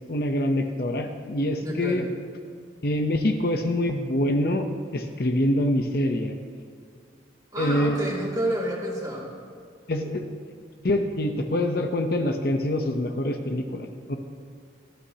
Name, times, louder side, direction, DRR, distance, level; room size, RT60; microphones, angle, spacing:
voice 1, 0.1-2.1 2.8-4.7 4.9-6.4 7.6-8.2 9.9-10.3 10.8-14.2, left 1 dB, 55° left, 5 dB, 0.8 m, -25 dB
voice 2, 1.6-2.0 7.5-9.3, equal, 20° right, -4 dB, 2.4 m, -29 dB
18.5 x 13.0 x 2.9 m, 2.2 s
head